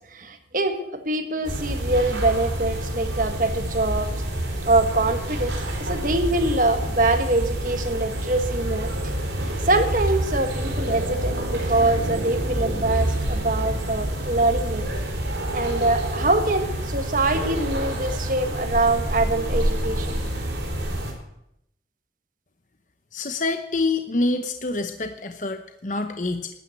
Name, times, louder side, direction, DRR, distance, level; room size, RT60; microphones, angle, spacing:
voice 1, 0.1-4.1 4.6-8.9 9.6-14.9 15.5-20.1, right 2 dB, 45° right, 7 dB, 1.5 m, -24 dB
sound 1, 1.4-21.1, right 1 dB, 90° right, 4.0 m, -27 dB
voice 2, 23.1-26.5, left 2 dB, 45° left, 7 dB, 0.8 m, -26 dB
12.5 x 9.4 x 8.3 m, 0.80 s
head